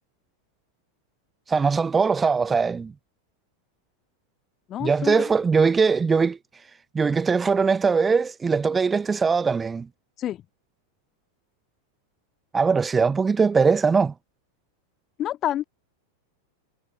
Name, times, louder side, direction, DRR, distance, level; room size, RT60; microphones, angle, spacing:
voice 1, 1.5-2.9 4.8-6.4 6.9-9.9 12.5-14.1, right 5 dB, 15° right, 0.5 m, -21 dB
voice 2, 4.7-5.3 10.2-10.5 15.2-15.6, left 12 dB, 30° left, 1.8 m, -28 dB
figure-of-eight pair, 90°, 0 cm